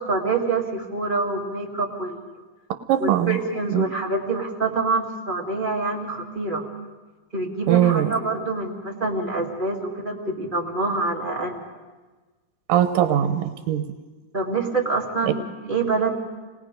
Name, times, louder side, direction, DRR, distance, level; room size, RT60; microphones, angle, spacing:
voice 1, 0.0-2.2 3.0-6.6 7.3-11.6 14.3-16.1, right 3 dB, 20° right, -2 dB, 1.5 m, -26 dB
voice 2, 2.9-3.4 3.7-3.8 7.7-8.1 12.7-13.8, right 11 dB, 85° right, 8 dB, 2.5 m, -20 dB
28.5 x 20.0 x 5.1 m, 1.3 s
omnidirectional pair, 3.9 m